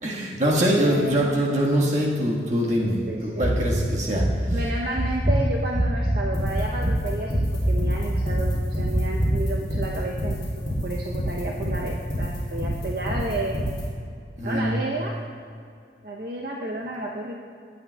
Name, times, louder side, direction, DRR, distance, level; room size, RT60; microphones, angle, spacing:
voice 1, 0.0-4.2 14.4-14.7, equal, 40° right, -3 dB, 1.4 m, -23 dB
voice 2, 0.7-1.4 2.8-3.6 4.5-7.4 7.7-13.6 14.4-15.2 16.0-17.4, right 1 dB, 60° right, -1 dB, 0.7 m, -31 dB
sound 1, 3.4-3.8 4.2-4.6 5.0-6.2 6.5-7.0 7.3-7.7 8.1-8.5 8.9-9.3, right 1 dB, 15° right, 1.2 m, -23 dB
sound 2, 6.3-13.8, equal, 30° left, 2.5 m, -28 dB
17.0 x 8.5 x 2.2 m, 2.3 s
head